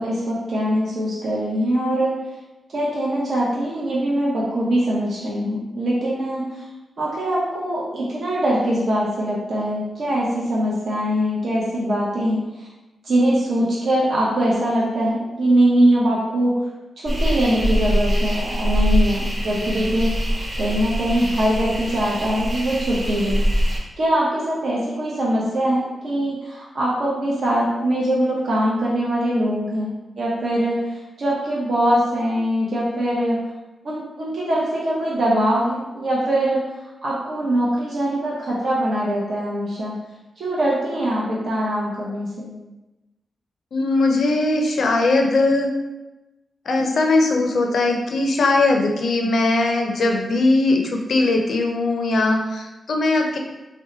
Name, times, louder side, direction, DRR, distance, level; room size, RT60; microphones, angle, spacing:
voice 1, 0.0-2.1 2.7-6.6 7.0-12.7 13.0-16.6 17.0-20.3 20.6-23.4 24.0-29.9 30.2-33.4 33.8-36.6 37.0-39.9 40.4-42.5, right 1 dB, 65° right, -6 dB, 0.7 m, -22 dB
sound 1, 17.1-23.8, equal, 30° right, 1.0 m, -23 dB
voice 2, 43.7-45.7 46.7-53.4, left 2 dB, 70° left, 2 dB, 0.4 m, -20 dB
2.7 x 2.1 x 3.8 m, 1.0 s
cardioid pair, 80°, 0 cm